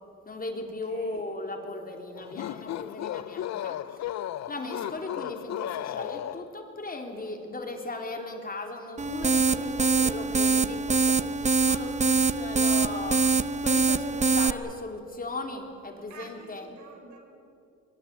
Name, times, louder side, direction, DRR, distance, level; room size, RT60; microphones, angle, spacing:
voice 1, 0.2-4.2 4.5-13.2 13.6-16.7, left 2 dB, 30° left, 3 dB, 3.6 m, -37 dB
voice 2, 0.9-1.2 16.1-17.2, right 4 dB, 75° right, 3 dB, 6.1 m, -47 dB
sound 1, 2.2-6.7, left 12 dB, 60° left, 0.6 m, -35 dB
sound 2, 9.0-14.5, right 4 dB, 25° right, 0.8 m, -24 dB
23.5 x 22.0 x 8.3 m, 2.6 s
cardioid pair, 90°, 30 cm